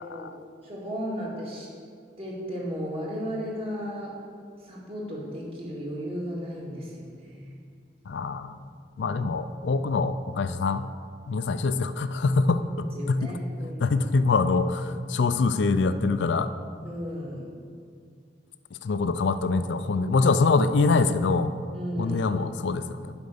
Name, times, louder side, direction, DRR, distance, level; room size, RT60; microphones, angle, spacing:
voice 1, 0.6-1.7 2.2-4.2 4.6-7.6 9.0-9.3 12.9-14.1 16.8-17.4 21.7-22.3, equal, 35° right, -4 dB, 2.1 m, -35 dB
voice 2, 8.1-8.6 9.0-10.8 11.3-13.4 13.8-16.5 18.8-21.5 22.0-23.1, left 4 dB, 90° left, 11 dB, 0.4 m, -24 dB
10.5 x 5.2 x 6.6 m, 2.2 s
head